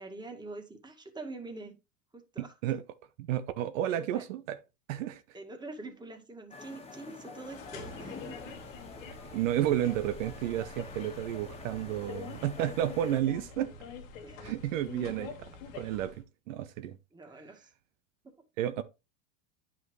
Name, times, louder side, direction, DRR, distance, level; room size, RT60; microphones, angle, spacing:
voice 1, 0.0-1.8 2.1-2.5 3.9-4.2 5.3-8.6 14.2-14.5 15.0-15.3 17.1-17.7 18.2-18.3, right 2 dB, 10° right, 2.0 m, -45 dB
voice 2, 2.4-2.8 3.2-4.6 4.9-5.2 9.3-13.7 14.4-15.3 15.7-17.0 18.6-18.8, right 12 dB, 75° right, 0.9 m, -31 dB
sound 1, 6.5-13.2, left 3 dB, 15° left, 1.5 m, -48 dB
sound 2, 7.4-16.2, left 5 dB, 80° left, 2.1 m, -45 dB
9.7 x 5.9 x 3.2 m
supercardioid pair, 105°, 39 cm